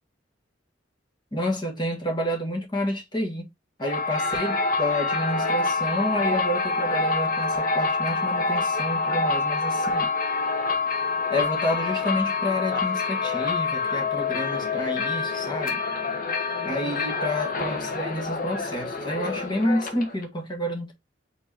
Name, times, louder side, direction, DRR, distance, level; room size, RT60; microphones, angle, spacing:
voice 1, 1.3-3.5 3.8-10.1 11.3-15.8 16.6-20.9, left 1 dB, 25° left, 1.6 m, -29 dB
sound 1, 3.8-20.2, left 4 dB, 50° left, 1.1 m, -26 dB
4.6 x 4.0 x 2.9 m
head